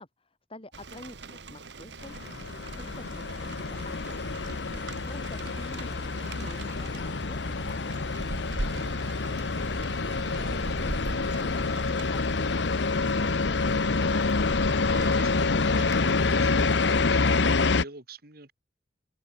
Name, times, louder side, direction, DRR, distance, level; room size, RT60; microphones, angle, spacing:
voice 1, 0.0-2.2 2.5-4.4 5.1-9.6, left 1 dB, 30° left, 3.6 m, -49 dB
Rain, 0.7-16.8, right 2 dB, 75° right, 1.9 m, -41 dB
sound 1, 2.0-17.8, left 3 dB, 75° left, 0.9 m, -27 dB
voice 2, 4.6-5.1 10.2-10.5 14.5-18.5, right 3 dB, 60° right, 4.0 m, -47 dB
head